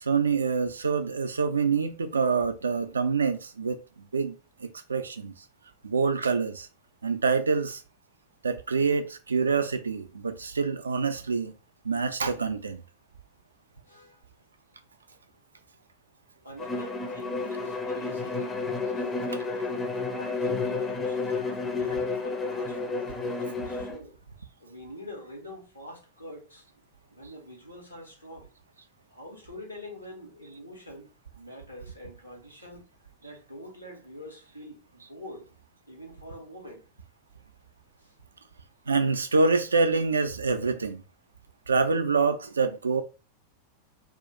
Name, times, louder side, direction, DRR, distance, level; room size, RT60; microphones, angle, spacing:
voice 1, 0.0-3.8 4.1-5.3 5.8-6.7 7.0-7.8 8.4-11.5 11.8-12.8 38.9-41.0 41.7-43.0, right 4 dB, 75° right, 0.4 m, -26 dB
voice 2, 13.8-14.2 15.1-15.2 16.4-18.5 18.9-24.2 24.6-26.7 27.1-28.5 29.1-32.8 33.2-35.5 35.9-36.8 38.0-38.1, left 1 dB, 90° left, 1.0 m, -45 dB
Bowed string instrument, 16.6-24.0, left 3 dB, 15° left, 0.5 m, -31 dB
2.4 x 2.3 x 3.8 m
figure-of-eight pair, 90°, 0 cm